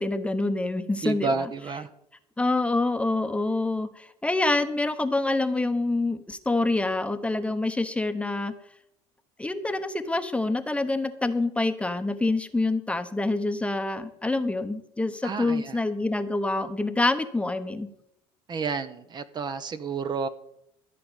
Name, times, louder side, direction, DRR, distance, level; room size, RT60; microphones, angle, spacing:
voice 1, 0.0-1.5 2.4-8.5 9.4-17.9, left 2 dB, 10° left, 9 dB, 0.9 m, -26 dB
voice 2, 1.0-1.9 15.2-15.8 18.5-20.3, right 5 dB, 35° right, 11 dB, 0.8 m, -30 dB
14.0 x 5.1 x 9.0 m, 0.78 s
supercardioid pair, 100°, 13 cm